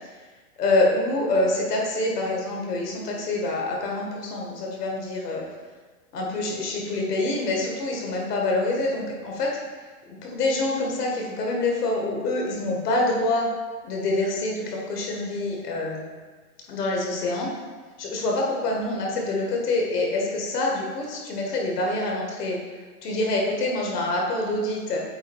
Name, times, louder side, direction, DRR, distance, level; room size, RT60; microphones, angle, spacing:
voice 1, 0.6-5.4 6.1-9.6 10.1-13.5 13.8-16.0 16.7-17.5 18.0-22.6 23.0-25.0, left 2 dB, 85° left, -1 dB, 1.8 m, -26 dB
7.8 x 2.7 x 4.5 m, 1.4 s
supercardioid pair, 165°, 46 cm